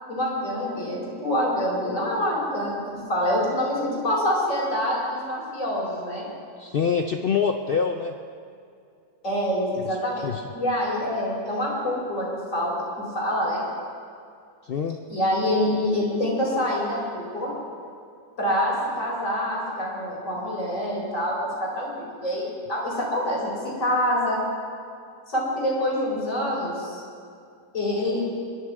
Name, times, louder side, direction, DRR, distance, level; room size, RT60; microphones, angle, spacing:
voice 1, 0.1-6.2 9.2-10.3 10.5-13.6 15.1-17.5 18.4-24.4 25.3-27.0 27.7-28.2, equal, 45° left, -5 dB, 5.0 m, -26 dB
voice 2, 6.6-8.1 10.2-10.5 14.6-15.0, left 6 dB, 85° left, 5 dB, 0.5 m, -25 dB
24.0 x 11.0 x 4.9 m, 2.4 s
omnidirectional pair, 1.8 m